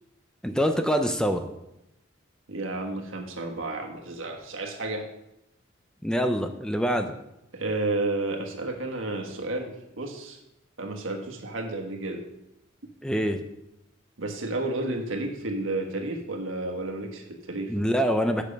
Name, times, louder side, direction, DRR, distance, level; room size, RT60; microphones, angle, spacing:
voice 1, 0.4-1.5 6.0-7.1 13.0-13.4 17.7-18.4, equal, 5° left, 6 dB, 0.5 m, -25 dB
voice 2, 2.5-5.1 7.5-10.4 10.8-12.2 14.2-17.8, right 2 dB, 75° right, 2 dB, 1.5 m, -31 dB
8.7 x 6.6 x 5.3 m, 0.86 s
head